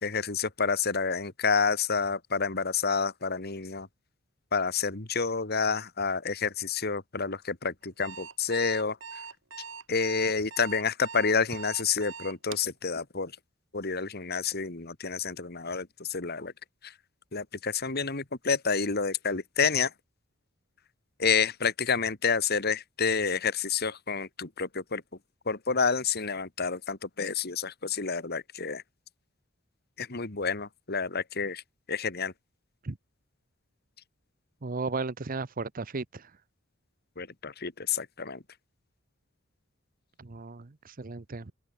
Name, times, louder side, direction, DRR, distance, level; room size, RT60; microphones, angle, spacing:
voice 1, 0.0-3.9 4.5-9.0 9.9-13.3 13.7-16.5 17.3-19.9 21.2-25.0 25.5-28.8 30.0-31.6 31.9-32.3 37.2-38.4, left 5 dB, 50° left, 2.1 m, -29 dB
Alarm, 7.8-12.7, right 5 dB, 70° right, 7.4 m, -42 dB
voice 2, 34.6-36.2 40.2-41.5, right 3 dB, 45° right, 0.8 m, -35 dB
open air
head